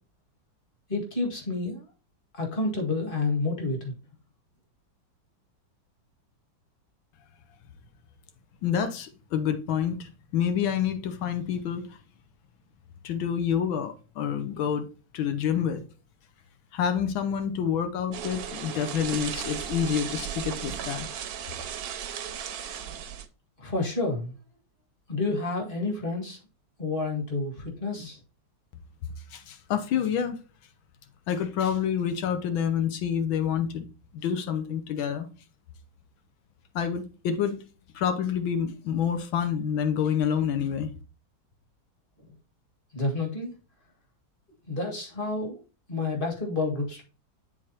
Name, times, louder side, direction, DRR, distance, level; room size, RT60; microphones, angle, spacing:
voice 1, 0.9-1.9 2.3-3.9 22.9-23.0 23.6-24.3 25.1-26.4 26.8-28.2 42.9-43.5 44.7-45.6 45.9-47.0, left 3 dB, 25° left, 2.0 m, -29 dB
voice 2, 8.6-12.0 13.0-14.9 15.1-15.8 16.7-21.1 29.3-30.4 31.3-33.8 34.2-35.3 36.7-37.6 37.9-40.9, left 8 dB, 85° left, 1.6 m, -28 dB
sound 1, 18.1-23.3, right 8 dB, 65° right, 1.0 m, -35 dB
10.5 x 4.0 x 2.8 m
omnidirectional pair, 2.1 m